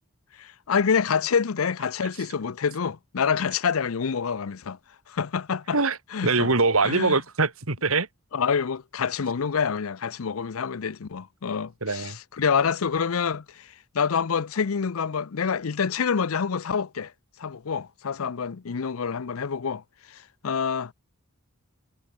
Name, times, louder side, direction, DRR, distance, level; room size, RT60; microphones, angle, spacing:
voice 1, 0.4-4.8 5.1-5.8 6.1-6.5 6.8-7.2 8.3-17.1 17.4-19.8 20.1-20.9, left 6 dB, 80° left, 0.6 m, -27 dB
voice 2, 6.2-8.1 11.8-12.2, right 3 dB, 80° right, 2.5 m, -23 dB
head